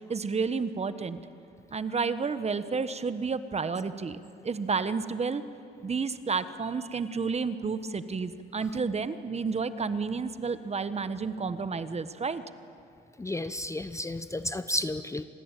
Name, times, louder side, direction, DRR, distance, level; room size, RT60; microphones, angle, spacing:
voice 1, 0.1-1.2 1.7-5.4 5.8-12.4, right 5 dB, 30° right, 12 dB, 1.3 m, -31 dB
voice 2, 13.2-15.2, left 1 dB, 15° left, 12 dB, 0.8 m, -32 dB
26.5 x 20.5 x 9.1 m, 2.6 s
cardioid pair, 90°, 20 cm